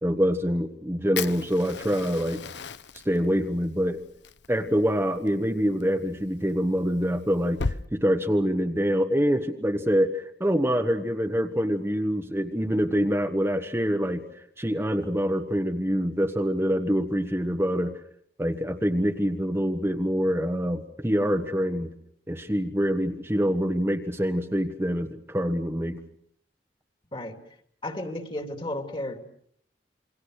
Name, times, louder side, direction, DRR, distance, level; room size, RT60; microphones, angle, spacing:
voice 1, 0.0-2.4 3.0-4.0 4.5-17.9 18.4-21.9 22.3-26.0, equal, 15° right, 4 dB, 1.3 m, -25 dB
Fire, 1.2-7.8, left 4 dB, 80° left, 0.9 m, -37 dB
voice 2, 27.8-29.2, left 1 dB, 30° left, 6 dB, 2.7 m, -33 dB
28.0 x 24.0 x 6.5 m, 0.68 s
head